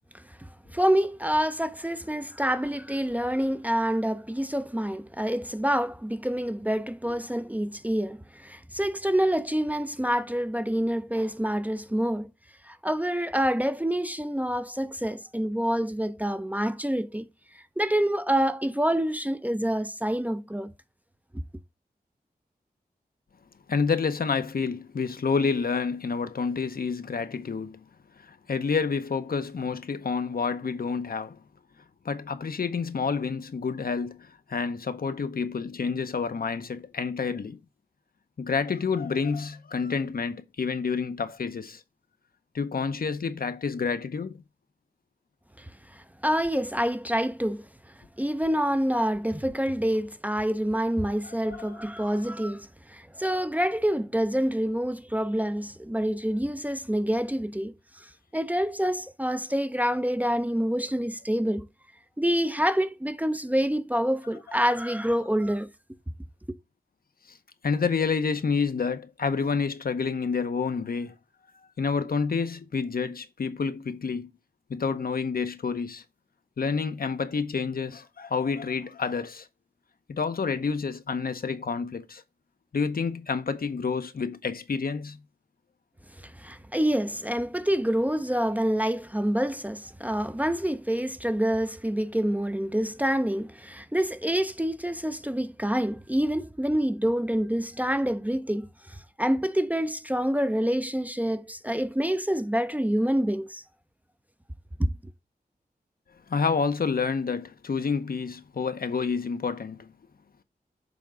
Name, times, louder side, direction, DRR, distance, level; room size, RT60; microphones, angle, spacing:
voice 1, 0.1-12.3 12.6-17.3 17.5-20.7 45.6-47.7 48.2-57.7 58.3-61.7 62.2-65.7 66.5-66.6 86.2-103.6 104.8-104.9, equal, 10° right, 0.5 m, -27 dB
voice 2, 23.7-27.8 28.2-31.4 32.0-37.6 38.4-41.8 42.5-44.4 51.2-52.2 64.5-64.7 67.3-67.4 67.6-71.1 71.8-74.3 74.7-76.0 76.6-79.5 80.1-82.2 82.7-85.2 106.3-109.9, left 5 dB, 65° left, 0.7 m, -29 dB
6.9 x 3.6 x 5.1 m
wide cardioid pair, 85°, 16 cm